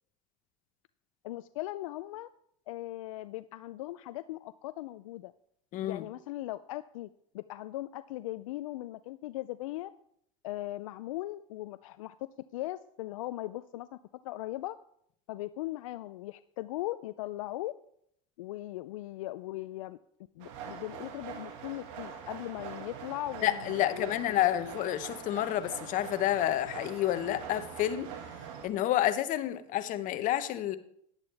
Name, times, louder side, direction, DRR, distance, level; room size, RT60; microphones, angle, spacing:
voice 1, 1.2-2.3 2.7-5.3 5.8-7.1 7.3-9.9 10.4-12.1 12.5-14.0 14.2-14.7 15.3-17.7 18.4-20.0 20.4-24.6, left 16 dB, 80° left, 13 dB, 0.4 m, -39 dB
voice 2, 5.7-6.1 23.4-28.1 28.6-30.8, left 13 dB, 50° left, 11 dB, 1.0 m, -29 dB
sound 1, 20.4-28.7, right 7 dB, 75° right, 1.8 m, -44 dB
10.5 x 10.5 x 3.4 m, 0.70 s
hypercardioid pair, 95°, 17 cm